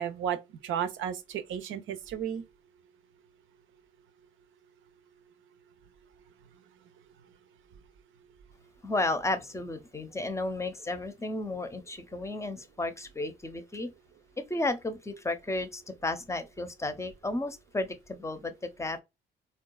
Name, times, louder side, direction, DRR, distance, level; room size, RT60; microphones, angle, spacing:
voice 1, 0.0-2.4, right 9 dB, 80° right, 0.6 m, -33 dB
voice 2, 8.8-13.9 14.5-19.0, left 2 dB, 15° left, 0.6 m, -33 dB
3.8 x 2.3 x 2.2 m
cardioid pair, 90°, 20 cm